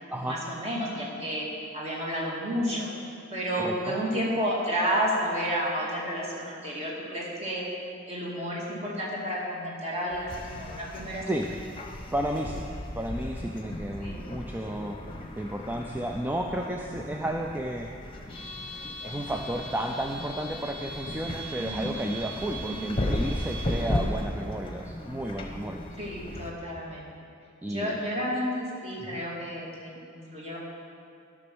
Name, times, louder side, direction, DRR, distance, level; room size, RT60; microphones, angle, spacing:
voice 1, 0.2-1.5 1.7-2.9 3.3-7.7 8.1-11.3 14.0-14.2 21.6-21.9 22.6-22.9 26.0-27.1 27.7-30.6, equal, 30° right, -5 dB, 2.3 m, -31 dB
voice 2, 3.6-4.0 11.2-11.4 12.1-12.7 12.9-15.0 15.4-17.9 19.0-25.9 27.6-28.0 29.0-29.2, right 1 dB, 10° right, 1 dB, 0.4 m, -32 dB
sound 1, 10.1-26.5, left 1 dB, 25° left, 1.0 m, -36 dB
12.5 x 6.2 x 6.2 m, 2.4 s
head